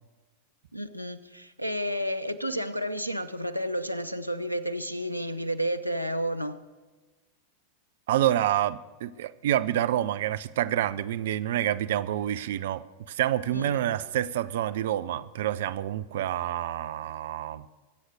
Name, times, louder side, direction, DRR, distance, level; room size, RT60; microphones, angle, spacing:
voice 1, 0.7-6.6 13.5-13.8, equal, 90° left, 0.7 m, -31 dB
voice 2, 8.1-17.6, right 12 dB, 55° right, 0.5 m, -28 dB
22.5 x 8.0 x 6.4 m
figure-of-eight pair, 90°, 0 cm